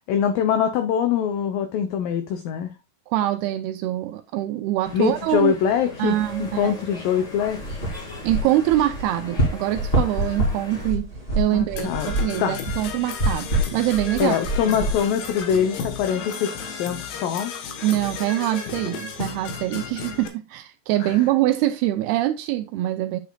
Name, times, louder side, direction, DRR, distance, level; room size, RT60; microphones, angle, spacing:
voice 1, 0.1-2.7 4.9-7.8 11.5-12.1 12.4-12.6 14.2-17.5 21.0-21.2, left 8 dB, 90° left, 1.9 m, -24 dB
voice 2, 3.1-5.6 6.0-6.7 8.2-11.1 11.4-14.4 14.6-14.8 17.8-23.2, right 14 dB, 85° right, 2.3 m, -24 dB
sound 1, 4.8-10.9, left 3 dB, 45° left, 5.4 m, -39 dB
sound 2, 7.5-16.0, right 1 dB, 20° left, 1.8 m, -27 dB
Percussion / Brass instrument, 11.8-20.3, left 6 dB, 70° left, 3.0 m, -34 dB
10.0 x 6.5 x 2.3 m
omnidirectional pair, 4.9 m